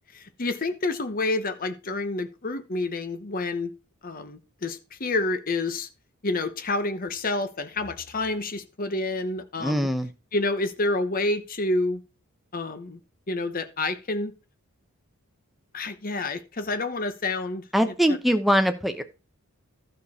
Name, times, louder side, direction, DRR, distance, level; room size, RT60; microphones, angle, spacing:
voice 1, 0.1-3.7 4.0-5.9 6.2-9.9 10.3-12.0 12.5-13.0 13.3-14.3 15.7-17.6, left 2 dB, 40° left, 1.0 m, -28 dB
voice 2, 9.6-10.1 17.7-19.0, equal, ahead, 0.8 m, -22 dB
12.5 x 6.6 x 4.2 m
head